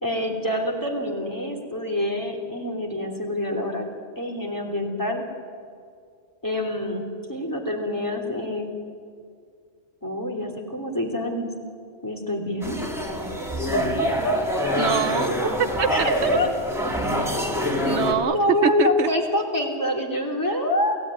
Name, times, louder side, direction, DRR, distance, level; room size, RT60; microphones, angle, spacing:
voice 1, 0.0-3.9 4.2-5.2 6.4-8.7 10.0-11.5 12.0-12.8 13.7-14.7 15.9-16.5 18.2-21.0, left 1 dB, 15° left, 2 dB, 3.2 m, -26 dB
sound 1, 12.6-18.1, left 1 dB, ahead, 3.1 m, -26 dB
voice 2, 14.8-15.3 15.6-16.3 17.9-18.4 18.6-19.1, right 7 dB, 75° right, 11 dB, 1.1 m, -24 dB
28.5 x 17.0 x 9.7 m, 2.2 s
omnidirectional pair, 1.2 m